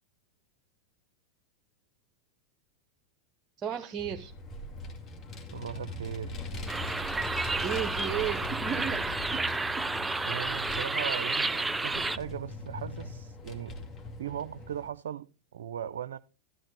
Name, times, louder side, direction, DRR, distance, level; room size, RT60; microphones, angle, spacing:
voice 1, 3.6-4.3 7.6-9.5 10.1-10.3, right 9 dB, 30° right, 0.9 m, -34 dB
Vehicle, 4.0-14.9, left 2 dB, 35° left, 2.1 m, -41 dB
voice 2, 5.5-6.4 10.2-13.8 14.2-16.2, right 9 dB, 75° right, 0.5 m, -38 dB
sound 1, 6.7-12.2, right 3 dB, 10° right, 0.5 m, -31 dB
12.5 x 11.5 x 3.3 m
hypercardioid pair, 95°, 0 cm